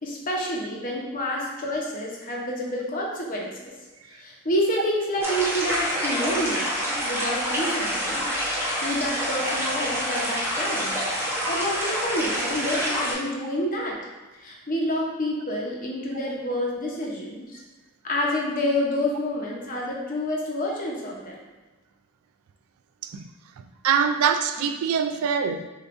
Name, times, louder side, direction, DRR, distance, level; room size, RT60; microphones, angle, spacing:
voice 1, 0.0-3.7 4.1-8.3 8.8-11.0 11.5-14.0 14.4-17.6 18.0-21.4, left 1 dB, 40° left, -2 dB, 0.8 m, -28 dB
sound 1, 5.2-13.1, equal, 10° right, 0.8 m, -27 dB
voice 2, 23.6-25.7, right 7 dB, 85° right, 8 dB, 0.3 m, -24 dB
6.6 x 2.5 x 2.5 m, 1.2 s
head